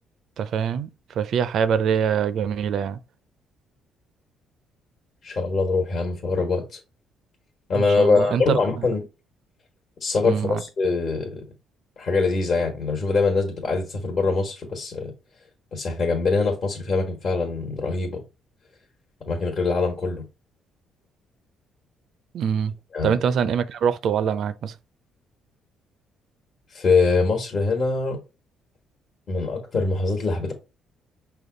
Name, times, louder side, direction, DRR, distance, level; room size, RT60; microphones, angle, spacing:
voice 1, 0.4-3.0 7.7-8.9 10.2-10.6 22.3-22.7 23.0-24.7, right 7 dB, 65° right, 0.4 m, -24 dB
voice 2, 5.2-6.8 7.7-9.0 10.0-11.4 12.0-15.1 15.7-18.2 19.3-20.2 22.9-23.2 26.7-28.2 29.3-30.5, left 4 dB, 50° left, 1.2 m, -23 dB
5.2 x 2.3 x 3.8 m
cardioid pair, 100°, 0 cm